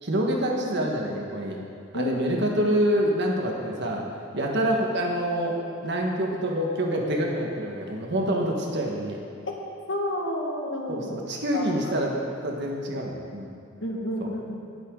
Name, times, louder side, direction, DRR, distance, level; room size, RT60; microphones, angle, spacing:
voice 1, 0.0-1.6 1.9-4.0 4.3-9.2 10.9-13.6 14.2-14.3, right 1 dB, 60° right, 0 dB, 1.8 m, -26 dB
voice 2, 9.9-11.1 11.5-12.0 13.8-14.6, left 1 dB, 70° left, -1 dB, 1.9 m, -30 dB
19.0 x 8.1 x 4.0 m, 2.5 s
head